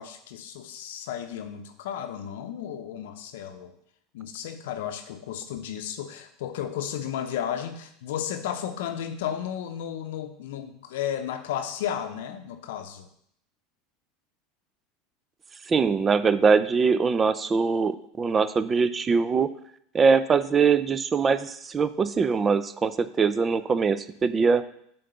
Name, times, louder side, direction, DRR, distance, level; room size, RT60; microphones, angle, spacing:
voice 1, 0.0-3.7 4.1-13.1, left 9 dB, 75° left, 7 dB, 0.7 m, -33 dB
voice 2, 15.7-19.5 19.9-24.6, right 5 dB, 25° right, 14 dB, 0.5 m, -22 dB
7.7 x 3.9 x 6.8 m, 0.69 s
hypercardioid pair, 85°, 0 cm